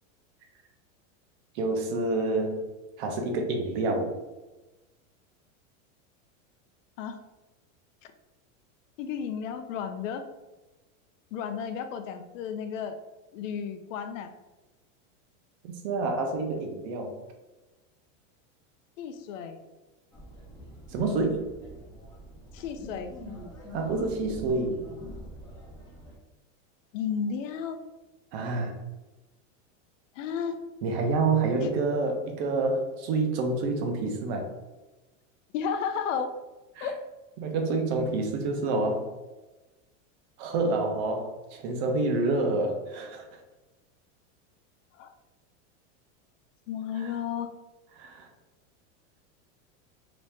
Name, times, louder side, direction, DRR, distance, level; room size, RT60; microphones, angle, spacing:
voice 1, 1.5-2.6 3.0-4.1 15.6-17.1 20.9-21.4 23.7-24.7 28.3-28.7 30.8-34.5 36.8-36.9 37.4-39.1 40.4-43.3 47.9-48.3, right 3 dB, 50° right, 3 dB, 0.7 m, -28 dB
voice 2, 9.0-10.2 11.3-13.0 13.3-14.3 19.0-19.6 22.5-23.1 26.9-27.8 30.1-30.6 31.6-31.7 35.5-36.3 36.8-37.0 44.9-45.1 46.7-47.5, left 7 dB, 70° left, 8 dB, 0.5 m, -33 dB
sound 1, 20.1-26.2, equal, 10° left, 0.7 m, -45 dB
3.0 x 2.7 x 3.4 m, 1.1 s
supercardioid pair, 150°, 39 cm